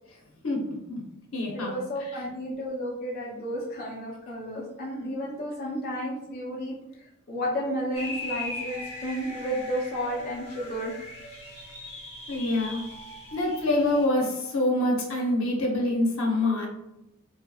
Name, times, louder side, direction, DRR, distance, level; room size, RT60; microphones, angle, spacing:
voice 1, 0.4-1.0 1.3-1.7 2.1-2.2 12.3-12.9 13.3-16.7, left 1 dB, 70° left, 0 dB, 0.8 m, -26 dB
voice 2, 1.5-10.9, equal, 45° left, -5 dB, 0.5 m, -32 dB
sound 1, 7.9-14.1, left 2 dB, 30° left, 0.8 m, -39 dB
3.1 x 2.9 x 2.2 m, 0.87 s
head